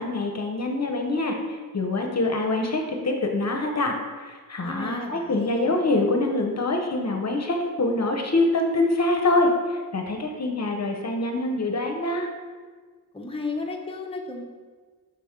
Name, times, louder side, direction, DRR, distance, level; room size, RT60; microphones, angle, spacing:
voice 1, 0.0-12.3, left 2 dB, 50° left, 3 dB, 0.7 m, -25 dB
voice 2, 4.6-5.8 13.1-14.4, left 3 dB, 15° left, 0 dB, 0.7 m, -33 dB
5.7 x 4.8 x 3.6 m, 1.5 s
wide cardioid pair, 80°, 34 cm